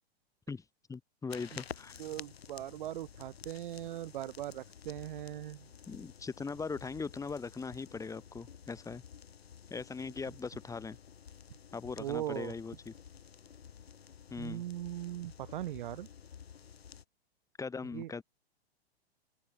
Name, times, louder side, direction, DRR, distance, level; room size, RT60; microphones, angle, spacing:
voice 1, 0.9-2.0 5.9-9.0 9.7-11.0 11.7-12.9 14.3-14.6 17.6-18.2, left 4 dB, 10° left, 2.5 m, -40 dB
sound 1, 1.3-17.0, left 7 dB, 70° left, 3.2 m, -52 dB
voice 2, 2.0-5.7 12.0-12.5 14.4-16.1 17.9-18.1, right 13 dB, 50° right, 1.3 m, -40 dB
open air
figure-of-eight pair, 110°, 32 cm